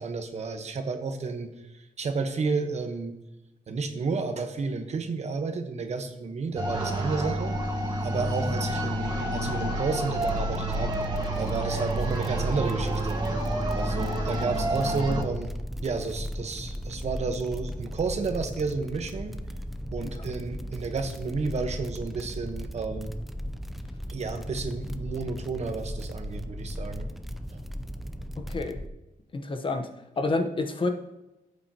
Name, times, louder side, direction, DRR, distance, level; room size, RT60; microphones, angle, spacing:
voice 1, 0.0-1.5 2.0-3.1 3.7-7.6 8.0-10.9 11.4-13.2 13.7-15.5 15.8-19.4 19.9-23.1 24.1-27.1 27.5-27.6, right 4 dB, 50° right, 6 dB, 1.1 m, -31 dB
sound 1, 6.6-15.2, right 1 dB, 30° right, 1.5 m, -29 dB
sound 2, 10.2-28.9, equal, ahead, 0.5 m, -36 dB
voice 2, 28.4-28.8 29.3-29.9 30.2-30.9, left 3 dB, 35° left, 6 dB, 0.9 m, -29 dB
15.0 x 8.4 x 2.9 m, 0.97 s
wide cardioid pair, 155°, 15 cm